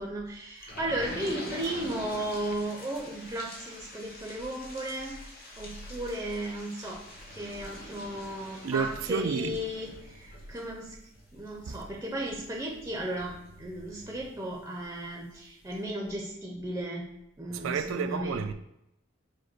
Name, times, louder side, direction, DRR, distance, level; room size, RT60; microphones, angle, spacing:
voice 1, 0.0-5.2 5.6-7.0 7.3-11.0 11.3-17.1 17.4-18.4, right 1 dB, 15° right, 0.6 m, -35 dB
sound 1, 0.6-14.9 15.4-15.5 15.7-15.8, left 1 dB, 50° left, 1.1 m, -45 dB
voice 2, 8.6-9.6 11.7-11.8 17.5-18.5, right 6 dB, 80° right, 0.4 m, -31 dB
4.8 x 2.2 x 4.4 m
head